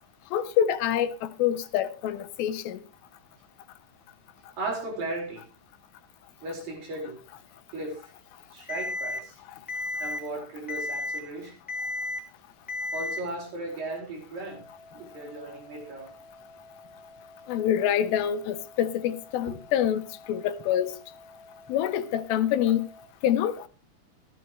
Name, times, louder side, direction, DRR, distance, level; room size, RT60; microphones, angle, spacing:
voice 1, 0.3-2.8 17.5-21.0 21.7-22.8 23.2-23.7, left 10 dB, 80° left, 2.7 m, -26 dB
voice 2, 4.6-5.4 6.4-7.2 7.7-8.0 8.5-9.3 10.0-11.6 12.9-14.6 14.9-16.1 19.5-19.6, right 2 dB, 65° right, 6.4 m, -36 dB
Alarm, 8.7-9.2 9.7-10.2 10.7-11.2 11.7-12.2 12.7-13.2, left 2 dB, 5° left, 1.7 m, -32 dB
sound 1, 14.5-23.1, left 2 dB, 45° left, 3.2 m, -51 dB
14.5 x 13.5 x 3.1 m
omnidirectional pair, 4.2 m